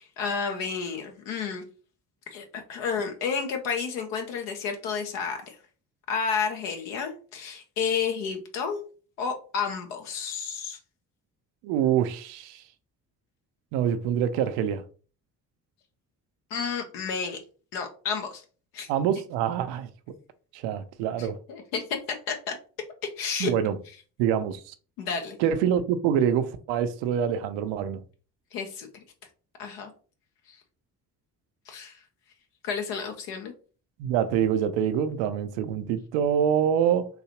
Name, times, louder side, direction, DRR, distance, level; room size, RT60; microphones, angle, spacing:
voice 1, 0.0-1.6 2.3-5.6 6.1-8.8 9.2-10.8 16.5-17.4 17.7-18.4 18.7-18.9 21.2-21.8 22.1-22.6 23.0-23.5 25.0-25.4 28.5-28.9 29.6-29.9 31.7-32.0 32.6-33.5, left 6 dB, 75° left, 0.8 m, -31 dB
voice 2, 11.6-12.6 13.7-14.8 18.9-19.9 20.5-21.4 23.4-23.8 24.2-24.7 25.4-28.0 34.0-37.1, right 9 dB, 70° right, 0.6 m, -25 dB
3.8 x 2.7 x 2.9 m
hypercardioid pair, 45°, 47 cm